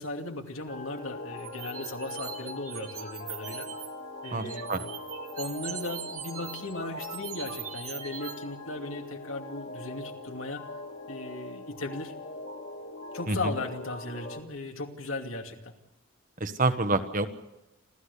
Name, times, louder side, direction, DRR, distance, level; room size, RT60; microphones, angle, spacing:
voice 1, 0.0-3.7 4.2-4.9 5.4-10.6 11.1-12.1 13.1-15.7, left 2 dB, 75° left, 3 dB, 2.6 m, -37 dB
sound 1, 0.7-14.4, left 2 dB, 50° left, 2.7 m, -42 dB
sound 2, 1.4-3.9 4.2-8.3, right 9 dB, 90° right, 3.1 m, -41 dB
voice 2, 4.3-4.8 13.3-13.4 16.4-17.3, right 3 dB, 40° right, 9 dB, 1.3 m, -27 dB
28.5 x 14.0 x 8.4 m, 0.97 s
head